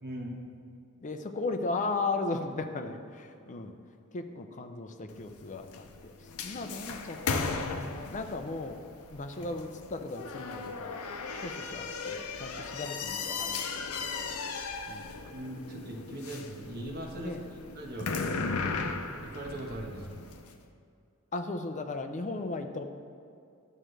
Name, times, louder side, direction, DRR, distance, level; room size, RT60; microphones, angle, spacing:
voice 1, 0.0-0.4 15.3-18.1 19.3-20.3, right 1 dB, 45° right, -1 dB, 1.3 m, -40 dB
voice 2, 1.0-3.7 4.1-6.1 6.4-8.8 9.1-11.0 11.4-14.0 14.9-15.2 17.2-17.4 21.3-22.8, left 3 dB, 35° left, 6 dB, 0.5 m, -36 dB
sound 1, 5.1-20.5, left 4 dB, 75° left, 0.6 m, -37 dB
11.0 x 7.4 x 3.3 m, 2.5 s
head